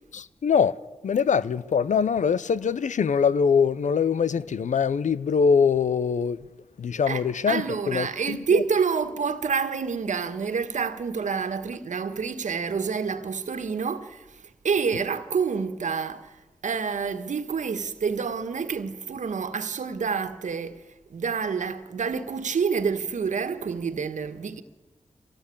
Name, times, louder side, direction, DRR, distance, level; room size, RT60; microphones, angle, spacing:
voice 1, 0.1-6.4 6.8-8.6, left 6 dB, 80° left, 0.8 m, -23 dB
voice 2, 7.5-20.8 21.1-24.6, right 6 dB, 80° right, 1.7 m, -28 dB
24.5 x 18.0 x 8.7 m
cardioid pair, 50°, 12 cm